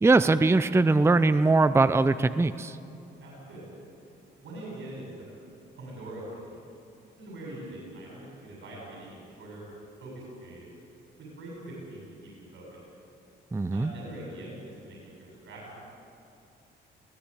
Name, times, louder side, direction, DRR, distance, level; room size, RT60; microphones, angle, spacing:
voice 1, 0.0-2.8 13.5-13.9, right 3 dB, 15° right, 12 dB, 0.6 m, -21 dB
voice 2, 3.2-3.6 4.4-5.1 5.8-6.6 7.2-9.6 10.0-10.6 11.2-12.8 13.7-15.9, right 1 dB, 70° right, -3 dB, 7.4 m, -43 dB
21.0 x 15.5 x 8.5 m, 2.6 s
cardioid pair, 90°, 20 cm